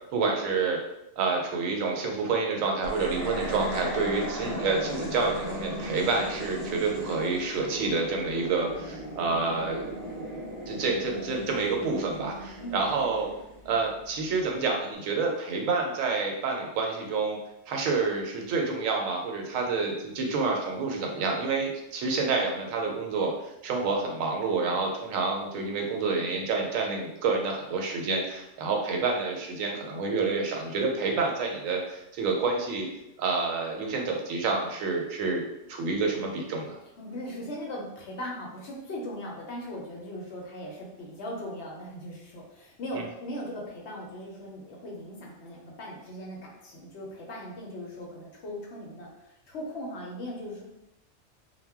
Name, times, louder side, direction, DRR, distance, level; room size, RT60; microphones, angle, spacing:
voice 1, 0.1-0.8 1.2-9.9 10.7-13.3 13.7-17.4 17.7-32.9 33.2-35.4 35.7-36.8, right 4 dB, 80° right, 1 dB, 1.0 m, -28 dB
sound 1, 2.8-14.2, equal, 50° right, 0.7 m, -37 dB
voice 2, 37.0-50.6, equal, 65° left, -2 dB, 0.8 m, -39 dB
2.2 x 2.1 x 3.4 m, 0.88 s
omnidirectional pair, 1.4 m